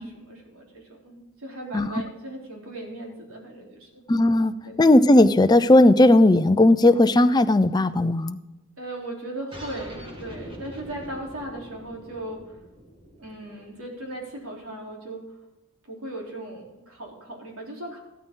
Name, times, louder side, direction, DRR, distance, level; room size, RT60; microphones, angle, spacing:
voice 1, 0.0-4.0 4.6-4.8 8.8-12.5 13.2-15.3 15.8-18.0, right 1 dB, 85° right, -1 dB, 3.8 m, -37 dB
voice 2, 4.1-8.4, left 1 dB, 20° left, 10 dB, 0.5 m, -17 dB
sound 1, 9.5-14.6, equal, 25° right, 2.1 m, -43 dB
14.0 x 13.0 x 3.9 m, 1.0 s
head